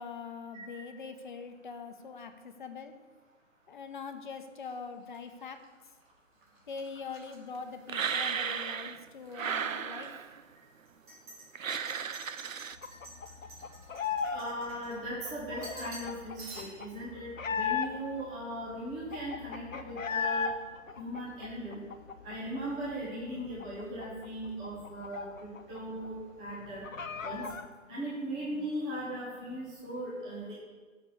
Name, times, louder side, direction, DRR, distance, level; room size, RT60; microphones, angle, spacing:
voice 1, 0.0-2.9 3.7-5.6 6.7-10.1, left 5 dB, 40° left, 8 dB, 0.8 m, -43 dB
voice 2, 0.5-0.9 14.3-20.5 21.0-21.8 22.2-26.8 27.2-27.4 27.9-30.5, right 1 dB, 5° right, -7 dB, 0.5 m, -38 dB
sound 1, 4.6-8.5 8.8-9.5 10.0-10.1 10.9-15.3 15.6-16.1 16.4-17.0, right 2 dB, 35° right, 3.0 m, -51 dB
sound 2, 7.9-9.0 9.3-10.4 11.6-12.8, right 7 dB, 80° right, 0.6 m, -34 dB
sound 3, 12.8-14.4 14.7-18.2 18.6-18.7 18.9-20.5 20.9-22.6 22.9-23.0 23.3-25.8 26.0-26.1 26.5-27.6, left 6 dB, 75° left, 0.9 m, -36 dB
7.1 x 6.0 x 7.1 m, 1.4 s
figure-of-eight pair, 140°, 40 cm